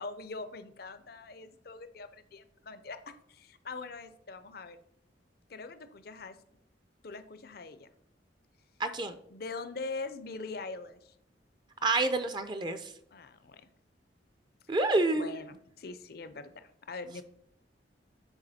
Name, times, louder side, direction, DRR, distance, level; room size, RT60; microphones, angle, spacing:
voice 1, 0.0-4.8 5.5-6.4 7.0-7.9 9.3-11.1 13.1-13.7 15.1-17.2, left 3 dB, 55° left, 11 dB, 0.6 m, -42 dB
voice 2, 8.8-9.1 11.8-12.9 14.7-15.4, right 2 dB, 25° right, 10 dB, 0.5 m, -28 dB
9.7 x 4.7 x 4.2 m, 0.71 s
head